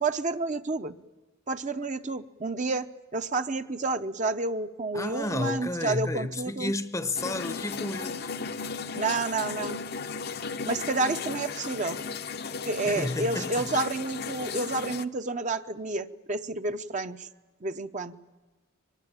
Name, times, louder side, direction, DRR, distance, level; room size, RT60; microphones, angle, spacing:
voice 1, 0.0-1.0 1.5-6.7 9.0-9.8 10.6-12.0 12.7-17.3 17.6-18.1, right 3 dB, 35° right, 0.8 m, -30 dB
voice 2, 4.9-8.3 12.8-13.9, left 2 dB, 15° left, 0.8 m, -32 dB
sound 1, 7.1-15.0, left 5 dB, 50° left, 0.7 m, -35 dB
23.5 x 20.5 x 9.0 m
head